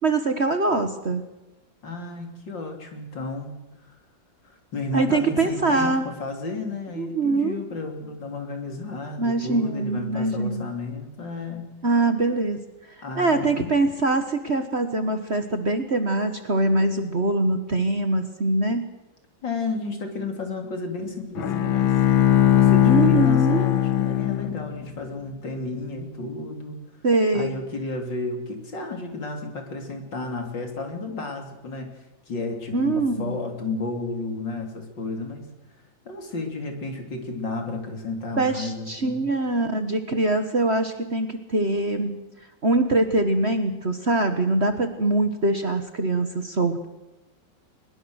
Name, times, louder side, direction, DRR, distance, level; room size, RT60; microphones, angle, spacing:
voice 1, 0.0-1.2 4.9-6.0 7.0-7.6 9.2-10.7 11.8-12.6 13.0-18.8 22.9-23.6 27.0-27.5 32.7-33.4 38.4-42.2 42.6-46.9, right 2 dB, 35° right, 7 dB, 1.5 m, -23 dB
voice 2, 1.8-3.5 4.7-11.7 13.0-13.7 19.4-21.9 22.5-26.8 27.3-31.9 32.3-35.5 36.1-39.3, left 3 dB, 65° left, 3 dB, 3.9 m, -32 dB
Bowed string instrument, 21.3-24.9, left 12 dB, 80° left, 2.0 m, -19 dB
22.5 x 21.5 x 6.5 m, 0.99 s
omnidirectional pair, 2.1 m